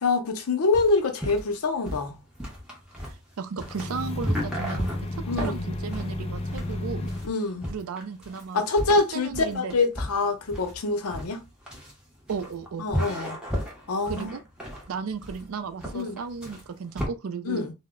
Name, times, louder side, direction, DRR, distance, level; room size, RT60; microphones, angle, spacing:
voice 1, 0.0-2.2 5.3-5.7 7.2-7.7 8.5-11.4 12.8-13.4 13.9-14.3 15.9-16.2 17.5-17.7, left 3 dB, 80° left, 0.6 m, -25 dB
sound 1, 0.7-17.1, equal, 5° right, 0.7 m, -34 dB
voice 2, 3.0-7.1 7.7-8.6 9.1-9.7 12.3-12.9 14.0-14.4 14.9-17.6, right 5 dB, 70° right, 0.4 m, -35 dB
sound 2, 3.6-7.3, left 1 dB, 25° left, 0.4 m, -32 dB
2.1 x 2.0 x 3.5 m
head